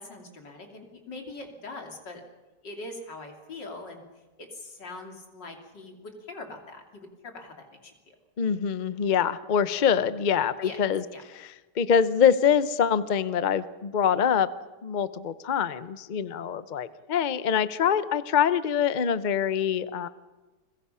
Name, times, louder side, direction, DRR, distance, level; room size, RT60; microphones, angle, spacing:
voice 1, 0.0-2.2 2.6-4.0 4.4-8.2 10.6-10.8 11.1-11.2 15.3-15.6 16.9-17.0, left 2 dB, 80° left, 3 dB, 3.6 m, -42 dB
voice 2, 8.4-11.0 11.3-11.5 11.8-14.5 14.8-20.1, left 7 dB, 45° left, 14 dB, 0.6 m, -24 dB
29.5 x 22.0 x 5.7 m, 1.2 s
omnidirectional pair, 1.9 m